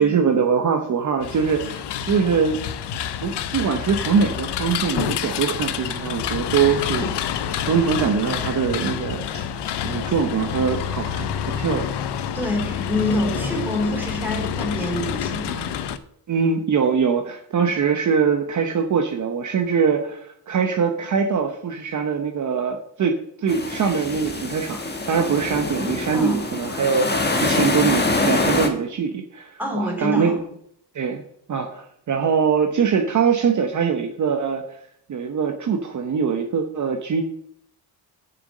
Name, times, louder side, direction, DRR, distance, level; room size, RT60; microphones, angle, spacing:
voice 1, 0.0-2.6 3.2-7.1 7.6-9.4 9.8-11.9 13.4-13.5 16.3-30.4 30.9-31.2 31.5-34.8 35.1-37.2, right 6 dB, 45° right, 4 dB, 0.9 m, -22 dB
sound 1, 1.2-16.0, left 9 dB, 80° left, 0.8 m, -28 dB
voice 2, 12.3-15.7 26.1-26.4 29.6-30.3, left 1 dB, 5° right, 0 dB, 3.2 m, -26 dB
sound 2, 23.5-28.7, left 2 dB, 25° left, 1.4 m, -24 dB
7.2 x 6.9 x 6.5 m, 0.71 s
cardioid pair, 115°, 41 cm